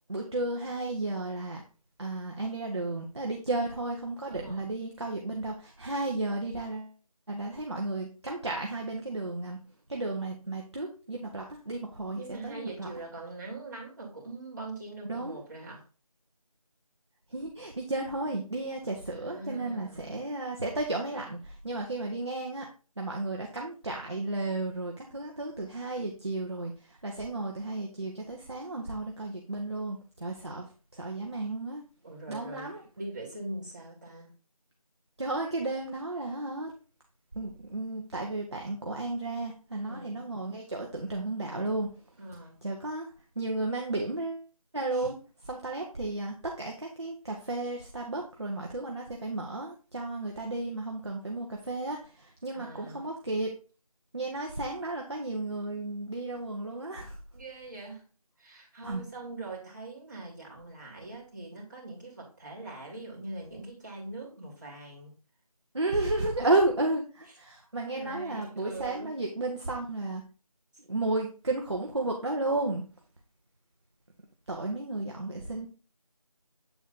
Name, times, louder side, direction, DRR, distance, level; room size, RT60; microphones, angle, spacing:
voice 1, 0.1-1.6 2.0-6.9 7.3-9.6 9.9-12.9 15.0-15.4 17.3-22.7 23.0-31.8 32.3-32.8 35.2-36.7 37.3-41.9 42.6-43.1 43.4-44.4 44.7-45.2 45.5-53.5 54.1-57.2 58.8-59.0 65.7-67.0 67.4-70.2 70.9-72.8 74.5-75.7, right 2 dB, 45° right, 0 dB, 1.1 m, -33 dB
voice 2, 4.3-4.7 12.2-15.8 19.1-20.2 32.0-34.3 39.7-40.2 42.2-42.6 44.9-45.1 52.5-53.0 57.3-58.0 58.4-65.1 66.4-67.0 67.8-69.1, right 2 dB, 30° right, -5 dB, 2.8 m, -42 dB
8.2 x 4.2 x 3.9 m, 0.35 s
figure-of-eight pair, 175°, 19 cm